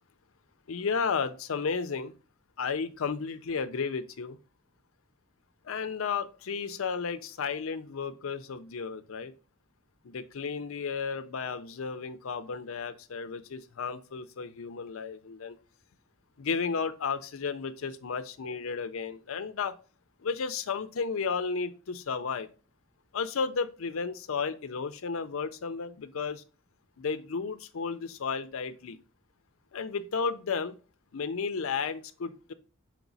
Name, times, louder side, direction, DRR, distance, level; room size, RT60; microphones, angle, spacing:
voice 1, 0.7-2.1 2.6-4.4 5.6-9.3 10.0-15.6 16.4-19.7 20.2-22.5 23.1-26.4 27.0-29.0 29.7-30.8 31.1-32.5, left 5 dB, 75° left, 10 dB, 0.5 m, -33 dB
5.9 x 4.5 x 4.0 m, 0.34 s
head